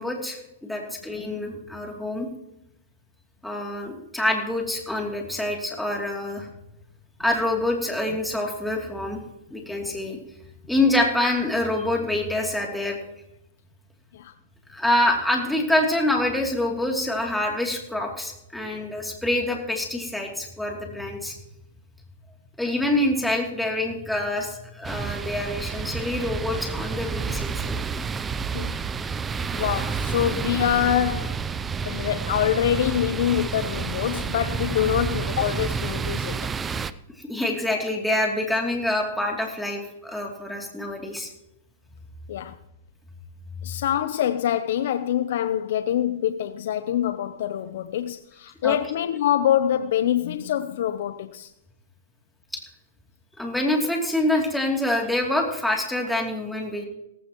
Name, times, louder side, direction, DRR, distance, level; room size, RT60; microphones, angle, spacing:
voice 1, 0.0-2.3 3.4-6.5 7.2-9.2 9.5-10.2 10.7-13.0 14.7-21.4 22.6-27.8 37.2-41.3 48.6-48.8 53.4-56.8, left 1 dB, 5° left, 2.9 m, -26 dB
sound 1, 24.8-36.9, right 5 dB, 15° right, 0.5 m, -29 dB
voice 2, 29.5-31.4 31.9-36.5 42.3-42.6 43.6-51.5, left 10 dB, 65° left, 0.7 m, -25 dB
17.5 x 15.5 x 3.1 m
hypercardioid pair, 140°, 0 cm